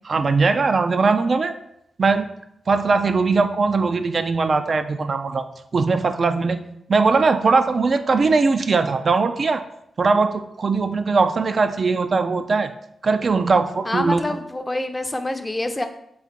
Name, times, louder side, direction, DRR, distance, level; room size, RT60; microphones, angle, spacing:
voice 1, 0.0-1.5 2.0-2.3 2.7-5.5 5.7-6.6 6.9-9.6 10.0-12.7 13.0-14.4, right 4 dB, 55° right, 8 dB, 0.3 m, -20 dB
voice 2, 13.8-15.9, left 1 dB, 25° left, 7 dB, 0.5 m, -26 dB
3.8 x 2.4 x 4.4 m, 0.76 s
supercardioid pair, 40°, 0 cm